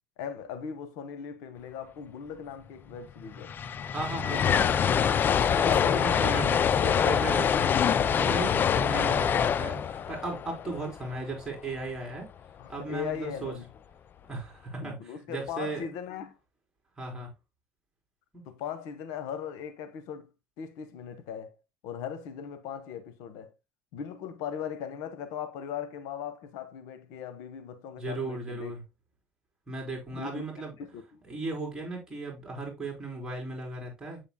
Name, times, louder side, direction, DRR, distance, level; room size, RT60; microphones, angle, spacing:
voice 1, 0.2-3.5 4.3-4.8 5.7-6.6 10.6-10.9 12.6-13.7 14.8-16.4 18.4-20.3 20.6-21.6 21.8-23.5 23.9-28.7 30.1-30.4 30.8-31.2, left 8 dB, 80° left, 1.0 m, -39 dB
sound 1, 2.9-3.0 3.2-11.4, left 8 dB, 40° left, 0.4 m, -25 dB
voice 2, 3.9-5.1 5.4-12.3 12.7-13.5 14.3-15.0 15.3-15.8 17.0-17.3 28.0-28.8 29.7-30.8 31.3-34.2, right 3 dB, 15° right, 4.2 m, -36 dB
7.7 x 7.0 x 2.2 m
supercardioid pair, 100°, 5 cm